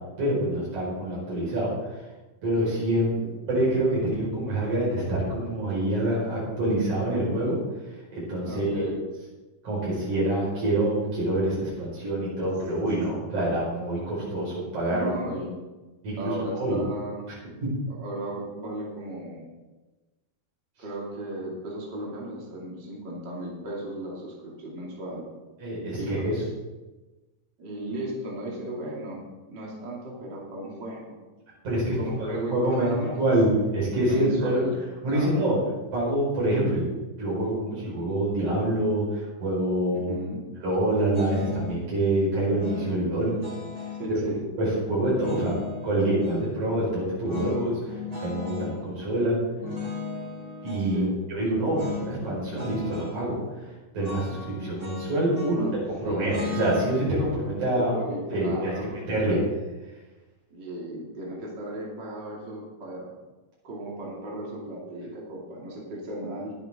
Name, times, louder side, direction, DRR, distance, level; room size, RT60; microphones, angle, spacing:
voice 1, 0.2-2.0 2.4-3.1 3.5-7.6 7.9-8.9 9.6-15.1 16.0-16.8 17.6-17.7 25.6-26.4 31.6-33.5 33.7-34.6 35.0-35.6 35.9-36.9 37.1-40.1 40.6-43.3 43.8-44.2 44.6-45.5 45.8-49.4 50.6-55.6 56.0-57.9 58.3-59.4, right 1 dB, 70° right, -7 dB, 6.3 m, -26 dB
voice 2, 8.5-9.0 14.9-15.6 16.2-17.3 17.9-19.4 20.8-25.3 26.0-26.5 27.6-29.2 29.5-31.2 32.0-33.3 34.0-34.7 35.0-35.6 40.1-40.4 43.9-44.4 50.9-51.1 55.5-56.5 57.7-59.0 60.5-63.1 63.6-66.5, right 1 dB, 35° right, -4 dB, 3.0 m, -35 dB
sound 1, 41.1-41.8 42.6-44.1 45.1-46.5 47.3-48.7 49.6-50.9 51.7-52.1 52.4-53.2 54.0-55.7 56.2-59.3, left 4 dB, 15° right, 2.2 m, -37 dB
20.5 x 8.9 x 3.6 m, 1.2 s
omnidirectional pair, 3.5 m